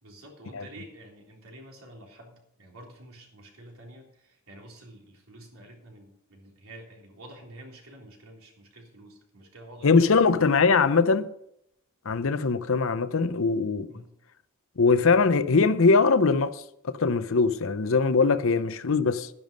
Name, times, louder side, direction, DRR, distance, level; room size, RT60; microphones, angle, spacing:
voice 1, 0.0-10.1 13.9-14.1 18.5-18.6, right 1 dB, 70° right, 3.6 m, -49 dB
voice 2, 9.8-11.3 12.1-13.9 14.8-19.3, left 4 dB, 60° left, 0.7 m, -22 dB
11.5 x 10.5 x 5.2 m
head